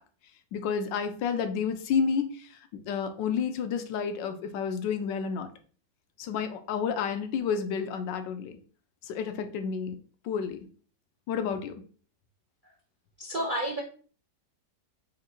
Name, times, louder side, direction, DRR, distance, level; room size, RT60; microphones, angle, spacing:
voice 1, 0.5-2.4 2.9-5.5 6.2-8.6 9.1-10.0 10.2-10.6 11.3-11.8, left 6 dB, 90° left, 8 dB, 1.3 m, -30 dB
voice 2, 13.2-13.8, right 1 dB, 55° right, -1 dB, 0.5 m, -30 dB
3.6 x 2.6 x 4.2 m, 0.41 s
omnidirectional pair, 1.9 m